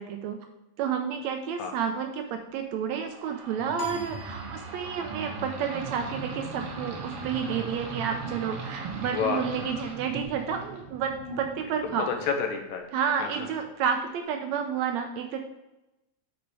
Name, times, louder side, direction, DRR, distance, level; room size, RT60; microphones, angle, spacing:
voice 1, 0.8-2.1 2.5-4.4 4.7-5.3 5.6-7.0 7.3-10.6 10.9-11.1 11.4-12.1 12.9-14.0 14.3-15.4, right 7 dB, 75° right, 5 dB, 1.7 m, -30 dB
sound 1, 3.1-12.4, right 4 dB, 55° right, 1.8 m, -38 dB
sound 2, 3.8-5.2, right 1 dB, 50° left, 1.0 m, -39 dB
voice 2, 9.0-9.4 12.0-12.9 13.2-13.5, left 6 dB, 75° left, 4 dB, 2.3 m, -29 dB
8.2 x 5.1 x 4.7 m, 0.95 s
omnidirectional pair, 3.6 m